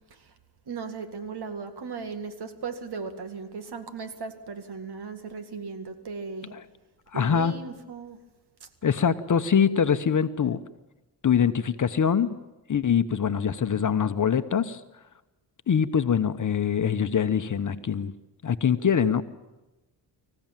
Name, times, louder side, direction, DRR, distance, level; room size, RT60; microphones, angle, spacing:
voice 1, 0.7-6.5 7.1-8.2 8.6-8.7, right 5 dB, 65° right, 8 dB, 2.1 m, -37 dB
voice 2, 7.1-7.5 8.8-10.6 11.2-12.3 12.7-14.8 15.7-18.1 18.4-19.2, left 7 dB, 45° left, 10 dB, 1.0 m, -23 dB
25.5 x 15.5 x 9.1 m, 1.1 s
cardioid pair, 90°, 42 cm